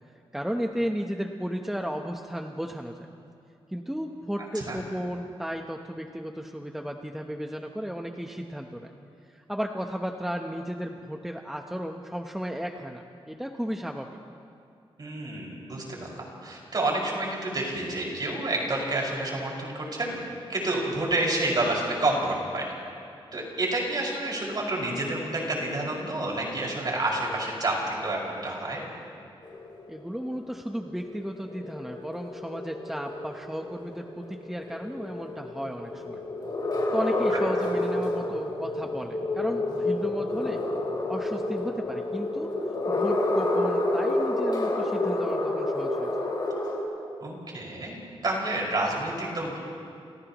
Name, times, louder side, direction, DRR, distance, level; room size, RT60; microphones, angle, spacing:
voice 1, 0.3-3.0 3.7-8.9 9.3-14.1 29.9-36.2 36.9-40.6 41.1-42.5 42.9-46.1, equal, 5° right, 2 dB, 0.9 m, -34 dB
voice 2, 15.0-20.2 20.5-22.7 23.3-28.8 37.3-37.4 47.2-48.0 48.2-49.6, right 2 dB, 45° right, -3 dB, 5.6 m, -29 dB
sound 1, 29.4-46.8, left 1 dB, 45° left, 5.1 m, -30 dB
sound 2, 34.4-43.3, left 3 dB, 30° left, 4.7 m, -35 dB
29.5 x 28.5 x 3.1 m, 2.5 s
wide cardioid pair, 150°, 10 cm